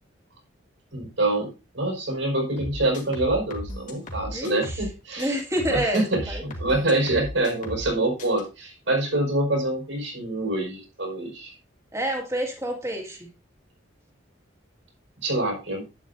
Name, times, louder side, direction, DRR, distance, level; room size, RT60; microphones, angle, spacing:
voice 1, 0.9-5.4 5.7-11.5 15.2-15.8, right 2 dB, 75° right, 1 dB, 5.2 m, -26 dB
sound 1, 2.6-4.9 5.2-7.9 8.2-8.4, equal, 40° left, 2.2 m, -36 dB
voice 2, 4.3-4.8 5.2-6.4 11.9-13.3, equal, 15° right, 2 dB, 2.1 m, -28 dB
11.0 x 9.1 x 2.7 m, 0.29 s
head